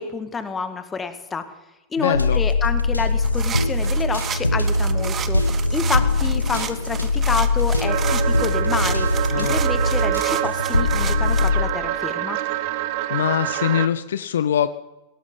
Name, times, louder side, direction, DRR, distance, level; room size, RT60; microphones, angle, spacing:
voice 1, 0.0-1.5 1.9-5.4 5.7-9.1 9.4-12.4, left 4 dB, 15° left, 10 dB, 1.7 m, -28 dB
voice 2, 2.0-2.4 9.3-9.6 13.1-14.7, left 9 dB, 65° left, 14 dB, 0.6 m, -22 dB
sound 1, 2.1-11.6, left 2 dB, 85° left, 1.0 m, -22 dB
sound 2, 3.2-11.5, right 8 dB, 25° right, 1.0 m, -33 dB
sound 3, 7.8-13.9, right 13 dB, 45° right, 0.8 m, -26 dB
19.0 x 18.0 x 3.8 m, 1.0 s
figure-of-eight pair, 90°, 0 cm